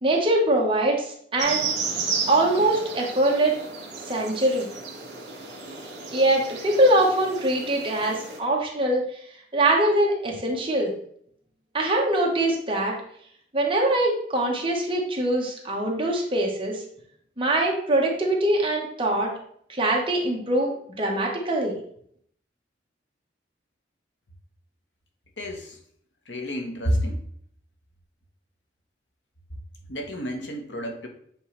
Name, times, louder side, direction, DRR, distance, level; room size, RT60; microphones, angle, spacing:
voice 1, 0.0-1.7 2.3-3.5 4.1-4.7 6.1-9.0 9.5-10.9 11.7-12.9 13.5-16.8 17.4-19.3 19.7-21.7, right 1 dB, 30° right, -1 dB, 1.2 m, -23 dB
sound 1, 1.4-8.4, right 5 dB, 70° right, 1.8 m, -33 dB
voice 2, 25.4-25.8 26.3-27.2 29.9-31.1, equal, 85° left, 3 dB, 1.1 m, -29 dB
7.7 x 3.8 x 3.2 m, 0.64 s
head